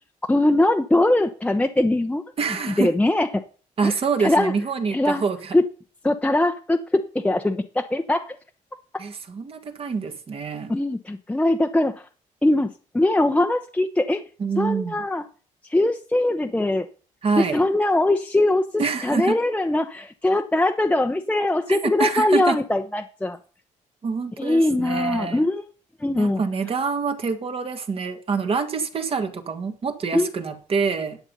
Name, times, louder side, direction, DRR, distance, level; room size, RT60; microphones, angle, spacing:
voice 1, 0.3-2.2 2.8-3.4 3.8-3.9 4.2-4.5 4.9-5.2 5.5-5.6 6.0-8.3 10.7-12.1 12.4-14.2 14.6-15.2 15.7-16.9 17.4-23.4 24.4-25.6 26.0-26.4 30.1-30.3, left 1 dB, 10° left, 0.8 m, -21 dB
voice 2, 2.4-2.9 3.8-5.6 9.0-10.7 14.4-15.0 17.2-17.7 18.8-19.4 21.7-22.6 24.0-25.5 26.2-31.2, right 5 dB, 45° right, 1.7 m, -26 dB
10.5 x 8.1 x 5.4 m
cardioid pair, 100°, 13 cm